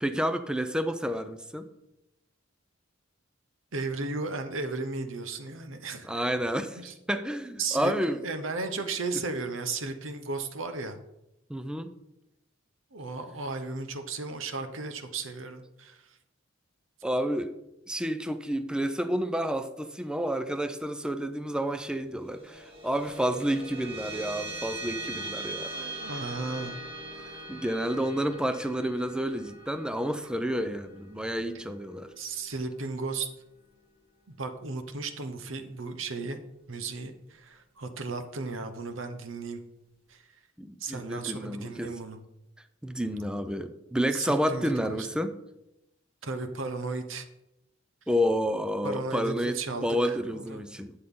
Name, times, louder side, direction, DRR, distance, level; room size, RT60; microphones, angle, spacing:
voice 1, 0.0-1.7 6.1-6.8 7.1-8.2 11.5-11.9 17.0-17.5 17.9-25.9 27.5-32.1 40.6-41.9 42.8-45.4 48.1-50.9, equal, 5° right, 0.5 m, -30 dB
voice 2, 3.7-6.3 6.8-6.9 7.6-7.9 8.2-11.0 12.9-16.0 25.7-26.8 30.6-30.7 32.2-33.3 34.4-36.4 36.7-39.6 40.1-40.2 40.8-42.2 44.1-45.1 46.2-47.3 48.8-50.6, right 3 dB, 75° right, 1.0 m, -35 dB
sound 1, 22.2-32.9, right 2 dB, 30° right, 1.9 m, -41 dB
12.0 x 7.9 x 3.8 m
head